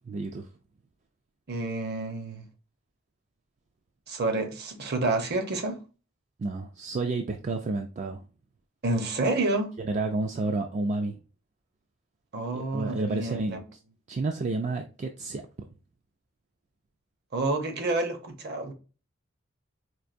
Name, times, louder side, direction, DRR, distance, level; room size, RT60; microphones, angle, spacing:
voice 1, 0.1-0.5 6.4-8.2 9.8-11.2 12.5-13.6 14.1-15.4, right 3 dB, 35° right, 0.3 m, -30 dB
voice 2, 1.5-2.5 4.1-5.8 8.8-9.7 12.3-13.6 17.3-18.7, right 2 dB, 55° right, 0.8 m, -29 dB
4.5 x 2.5 x 2.5 m
head